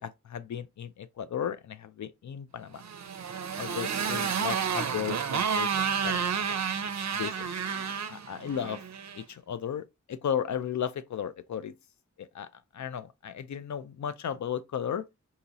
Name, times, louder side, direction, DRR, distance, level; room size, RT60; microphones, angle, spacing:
voice 1, 0.0-2.8 3.6-6.6 7.1-7.5 8.1-8.8 9.1-11.8 12.2-15.1, left 8 dB, 70° left, 0.5 m, -35 dB
Motorcycle, 2.8-9.2, right 7 dB, 65° right, 0.5 m, -31 dB
3.9 x 2.8 x 2.8 m
wide cardioid pair, 60°, 30 cm